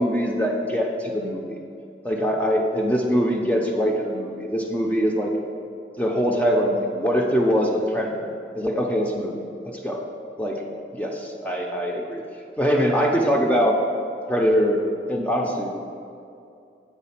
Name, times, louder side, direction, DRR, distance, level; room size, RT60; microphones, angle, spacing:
voice 1, 0.0-1.6 2.0-5.3 6.0-8.3 8.5-10.0 10.4-10.6 10.9-12.2 12.6-13.8 14.3-14.8 15.1-15.9, equal, 10° left, 0 dB, 0.4 m, -23 dB
7.3 x 3.7 x 5.6 m, 2.6 s
head